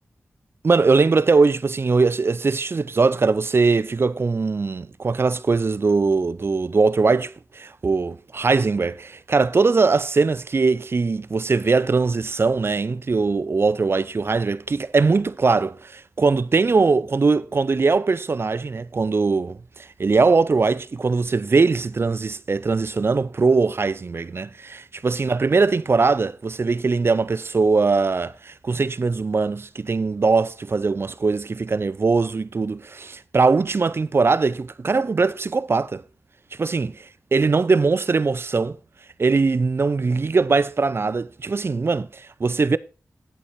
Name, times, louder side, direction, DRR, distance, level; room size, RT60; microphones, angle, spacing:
voice 1, 0.6-36.0 36.6-36.9 37.3-38.8 39.2-42.8, right 4 dB, 50° right, 0.6 m, -21 dB
8.8 x 8.5 x 4.2 m
cardioid pair, 50°, 5 cm